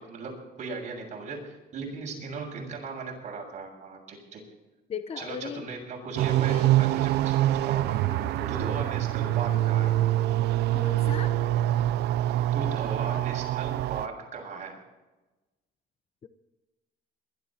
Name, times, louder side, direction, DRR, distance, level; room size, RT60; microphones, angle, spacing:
voice 1, 0.0-4.4 5.2-9.9 11.8-11.9 12.5-14.8, right 4 dB, 45° right, -1 dB, 7.0 m, -38 dB
voice 2, 4.9-5.7 6.4-6.7 7.9-8.5 10.7-11.3 16.2-16.3, left 7 dB, 35° left, 10 dB, 0.9 m, -38 dB
sound 1, 6.2-14.1, right 14 dB, 80° right, 0.6 m, -25 dB
22.0 x 12.5 x 4.4 m, 1.1 s
cardioid pair, 110°, 17 cm